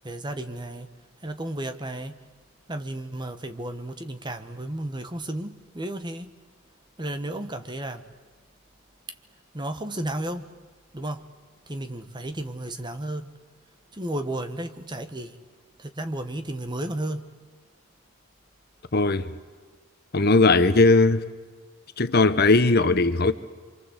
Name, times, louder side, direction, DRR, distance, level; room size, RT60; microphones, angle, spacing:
voice 1, 0.0-0.9 1.2-2.2 2.7-6.3 7.0-8.0 9.5-10.5 10.9-11.2 11.7-13.3 13.9-15.3 15.8-17.2, right 1 dB, 20° right, 1.4 m, -33 dB
voice 2, 18.9-19.3 20.1-21.3 22.0-23.3, left 3 dB, 45° left, 1.0 m, -18 dB
28.0 x 25.5 x 8.1 m
head